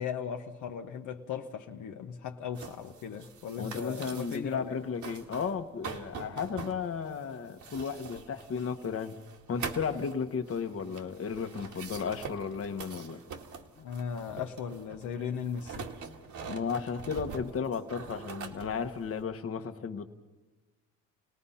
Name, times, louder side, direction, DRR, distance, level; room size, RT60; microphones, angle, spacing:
voice 1, 0.0-4.8 13.8-15.9, left 7 dB, 75° left, 1.2 m, -37 dB
sound 1, 2.6-4.6 4.9-5.6 5.8-19.2, right 5 dB, 70° right, 2.1 m, -44 dB
voice 2, 3.6-9.2 9.5-13.2 16.4-20.1, left 6 dB, 50° left, 1.4 m, -34 dB
29.5 x 18.5 x 5.7 m
cardioid pair, 90°, 30 cm